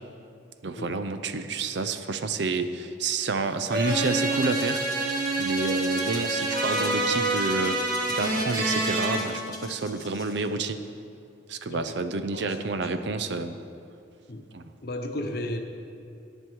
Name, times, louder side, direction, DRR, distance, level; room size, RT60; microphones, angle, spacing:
voice 1, 0.6-7.8 8.1-10.8 11.5-13.6 14.5-14.7, right 3 dB, 65° right, 10 dB, 0.5 m, -29 dB
sound 1, 3.7-9.2, right 2 dB, 45° right, 1.8 m, -27 dB
Rattle (instrument), 4.1-10.7, left 4 dB, 20° left, 0.9 m, -44 dB
voice 2, 11.7-12.9 14.3-14.5 14.8-15.6, left 1 dB, 55° left, 5 dB, 0.9 m, -35 dB
11.0 x 10.0 x 4.6 m, 2.6 s
head